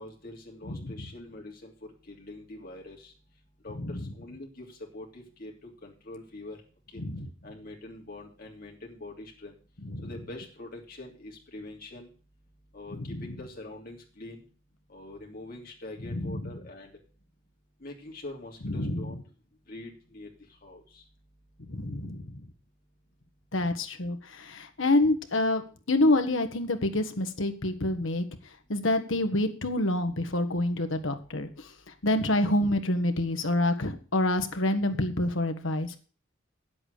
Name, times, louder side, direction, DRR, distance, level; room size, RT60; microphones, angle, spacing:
voice 1, 0.0-1.7 2.1-3.1 3.6-4.7 4.9-5.5 5.8-6.6 6.9-7.0 7.4-9.5 10.0-12.1 12.7-14.4 14.9-16.9 17.8-19.2 19.7-20.3 20.6-21.0, left 2 dB, 50° left, 0 dB, 3.0 m, -44 dB
voice 2, 3.7-4.1 7.0-7.3 9.8-10.1 12.9-13.2 16.1-16.5 18.6-19.1 21.7-22.4 23.5-28.2 28.7-31.7 32.0-36.0, left 1 dB, 75° left, 7 dB, 1.4 m, -27 dB
9.2 x 7.9 x 6.6 m, 0.38 s
head